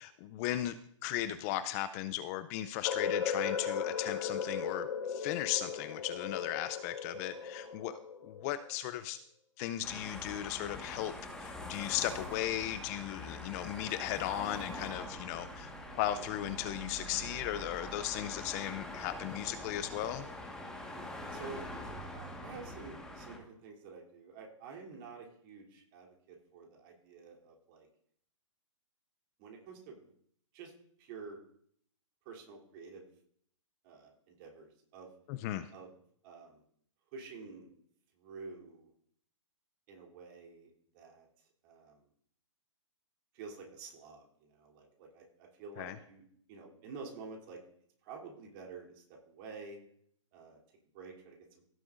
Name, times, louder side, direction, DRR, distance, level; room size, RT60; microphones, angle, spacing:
voice 1, 0.0-9.2 9.6-20.3 35.3-35.7 45.8-46.0, left 12 dB, 30° left, 13 dB, 0.4 m, -37 dB
sound 1, 2.8-8.7, left 6 dB, 70° left, 1.0 m, -37 dB
sound 2, 9.8-23.4, left 1 dB, 5° left, 1.5 m, -44 dB
voice 2, 21.3-21.6 22.1-27.9 29.4-30.0 30.5-30.7 31.0-31.4 32.2-33.0 33.8-35.1 35.7-35.9 36.2-36.6 37.1-37.7 38.2-38.9 39.9-40.7 40.9-41.3 41.6-41.9 43.3-44.3 44.5-46.2 46.5-47.6 48.0-49.8 50.3-50.6 50.9-51.4, right 4 dB, 40° right, 0 dB, 3.3 m, -49 dB
17.0 x 7.7 x 2.6 m, 0.65 s
hypercardioid pair, 135°, 17 cm